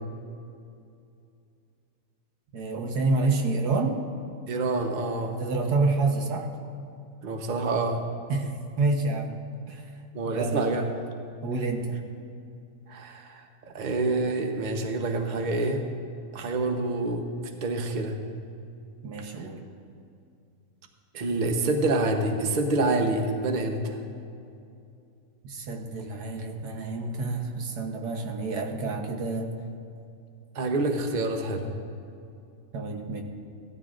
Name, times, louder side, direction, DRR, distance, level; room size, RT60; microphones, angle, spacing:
voice 1, 2.5-4.0 5.4-6.5 8.3-9.4 9.7-9.9 10.2-10.9 11.4-12.0 19.0-19.6 25.4-29.5 32.7-33.2, right 3 dB, 85° right, 3 dB, 1.6 m, -28 dB
voice 2, 4.5-5.4 7.2-8.1 10.1-10.8 12.9-15.8 16.3-17.2 17.6-18.2 21.1-24.0 30.5-31.7, right 2 dB, 35° right, 4 dB, 0.8 m, -27 dB
17.5 x 13.0 x 2.5 m, 2.5 s
omnidirectional pair, 1.7 m